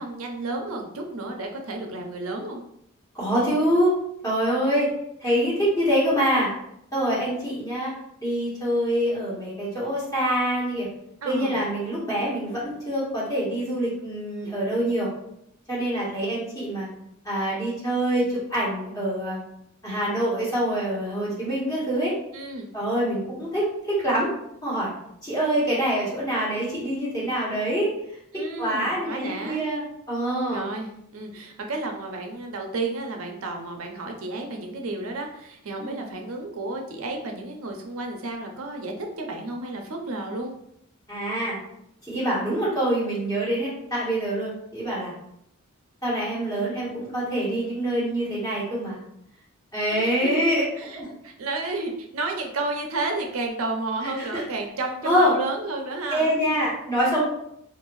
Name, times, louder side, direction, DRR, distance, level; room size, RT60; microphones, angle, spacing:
voice 1, 0.0-2.6 11.2-11.6 22.3-22.7 28.3-29.6 30.5-40.5 49.9-56.3, right 2 dB, 70° right, 2 dB, 0.6 m, -32 dB
voice 2, 3.1-4.0 4.2-4.9 5.2-6.5 6.9-7.9 8.2-10.9 11.2-15.1 15.7-16.9 17.2-19.4 19.8-22.1 22.7-24.3 24.6-24.9 25.2-27.9 28.3-29.8 30.1-30.6 35.8-36.0 41.1-41.6 42.1-45.1 46.0-49.0 49.7-50.6 50.9-51.1 54.0-54.4 55.0-55.4 56.1-57.2, equal, 15° left, -9 dB, 1.3 m, -25 dB
2.6 x 2.5 x 3.0 m, 0.75 s
head